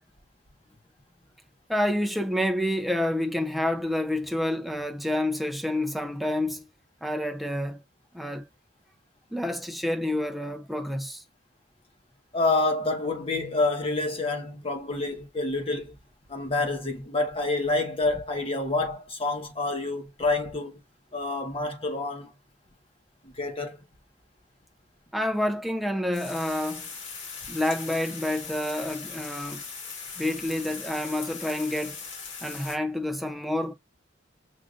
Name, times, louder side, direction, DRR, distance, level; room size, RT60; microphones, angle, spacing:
voice 1, 1.7-6.6 7.0-7.8 8.1-8.4 9.3-11.2 25.1-26.9 27.5-29.6 30.2-32.0 32.4-33.7, left 1 dB, ahead, 0.5 m, -28 dB
voice 2, 12.3-16.0 16.3-20.8 21.1-22.3 23.2-23.8, left 2 dB, 30° left, 1.0 m, -28 dB
sound 1, 26.1-32.8, left 5 dB, 90° left, 1.9 m, -40 dB
6.3 x 2.7 x 2.4 m
head